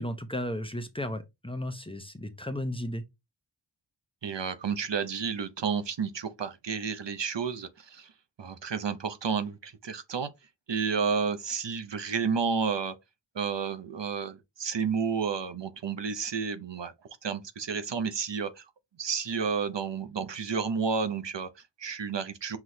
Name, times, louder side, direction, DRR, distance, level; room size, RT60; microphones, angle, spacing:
voice 1, 0.0-3.0, left 1 dB, 10° left, 0.8 m, -34 dB
voice 2, 4.2-8.1 8.4-10.3 10.7-12.9 13.3-16.9 17.2-18.7 19.0-22.6, right 6 dB, 70° right, 0.7 m, -31 dB
6.0 x 3.1 x 2.7 m
wide cardioid pair, 45°, 44 cm